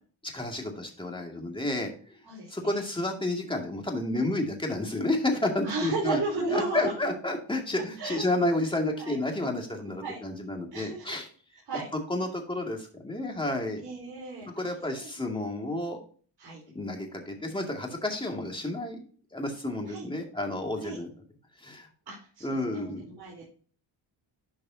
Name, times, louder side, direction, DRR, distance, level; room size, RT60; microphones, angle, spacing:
voice 1, 0.2-2.2 2.5-11.2 12.1-13.8 14.5-16.0 16.7-19.0 19.3-21.1 21.6-21.9 22.4-23.1, left 2 dB, 10° left, 1 dB, 2.3 m, -31 dB
voice 2, 2.2-2.8 5.6-7.1 7.7-8.2 9.0-9.2 10.0-10.2 10.7-11.2 11.7-11.9 13.8-15.3 16.4-16.6 19.9-20.1 20.8-21.0 22.1-23.4, right 3 dB, 55° right, -6 dB, 4.3 m, -35 dB
11.5 x 5.3 x 2.8 m, 0.42 s
cardioid pair, 100°, 45 cm